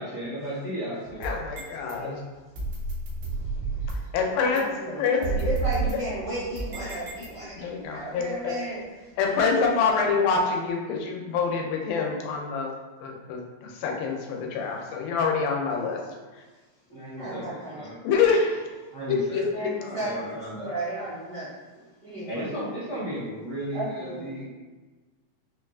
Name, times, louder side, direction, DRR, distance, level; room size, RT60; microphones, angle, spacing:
voice 1, 0.0-1.2 1.8-2.2 7.6-7.7 16.9-18.0 18.9-19.4 19.8-20.8 22.3-24.4, equal, 50° left, -11 dB, 0.8 m, -35 dB
sound 1, 1.1-1.9 2.5-4.1 4.6-4.7 5.2-7.7, right 4 dB, 90° right, 2.4 m, -31 dB
voice 2, 1.2-2.1 3.9-5.5 5.9-6.0 7.6-8.6 9.2-12.7 13.0-16.4 18.0-19.7, left 5 dB, 90° left, 1 dB, 2.3 m, -26 dB
voice 3, 4.5-8.8 17.2-17.8 19.3-20.3 20.6-21.5 22.0-22.6 23.7-24.4, right 1 dB, 75° right, -11 dB, 1.2 m, -34 dB
5.8 x 2.2 x 2.4 m, 1.3 s
omnidirectional pair, 3.8 m